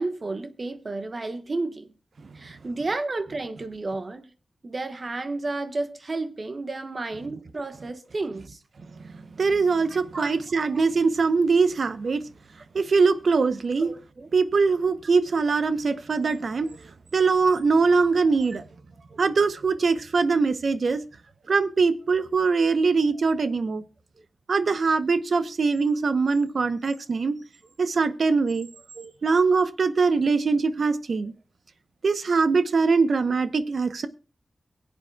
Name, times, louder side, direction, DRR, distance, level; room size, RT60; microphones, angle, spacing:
voice 1, 0.0-1.9 2.3-4.3 4.6-8.6 9.9-10.8 13.8-14.3 15.9-16.0 17.9-18.1 21.4-21.5 28.9-29.1, right 2 dB, 50° right, 1.3 m, -32 dB
voice 2, 9.4-12.2 12.7-13.9 14.3-18.6 19.2-21.0 21.5-23.8 24.5-27.4 27.8-28.7 29.2-31.3 32.0-34.1, right 4 dB, 75° right, 0.8 m, -22 dB
22.5 x 8.1 x 2.3 m
wide cardioid pair, 80°, 0 cm